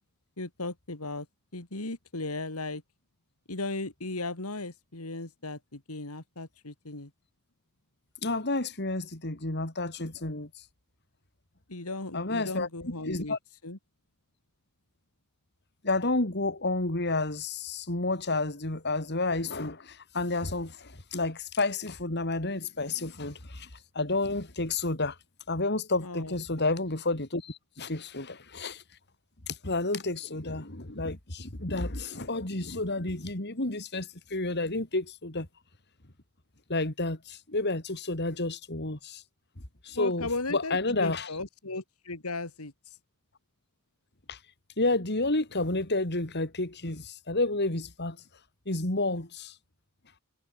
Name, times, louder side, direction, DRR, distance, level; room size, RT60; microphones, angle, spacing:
voice 1, 0.4-1.3 1.5-2.8 3.5-7.1 11.7-13.4 13.6-13.8 26.0-26.4 39.9-42.7, left 2 dB, 85° left, 3.1 m, -36 dB
voice 2, 8.2-10.5 12.1-12.7 13.0-13.4 15.8-23.7 23.9-25.2 25.5-28.8 29.5-35.5 36.7-39.2 39.8-41.3 44.3-44.4 44.8-48.2 48.7-49.5, left 2 dB, 50° left, 3.1 m, -30 dB
head